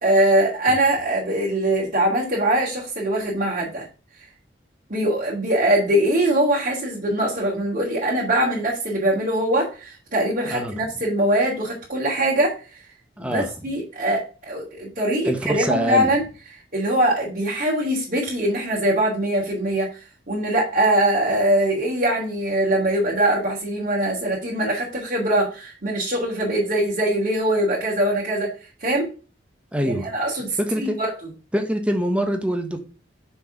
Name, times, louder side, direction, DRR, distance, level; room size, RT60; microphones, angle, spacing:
voice 1, 0.0-3.8 4.9-12.7 13.2-16.2 16.7-28.5 28.8-29.1 29.8-31.1, right 1 dB, 45° right, 2.8 m, -22 dB
voice 2, 13.2-13.5 15.2-16.1 29.7-30.1 30.6-31.0 31.5-32.8, right 1 dB, 5° right, 1.3 m, -24 dB
6.8 x 4.7 x 5.9 m
head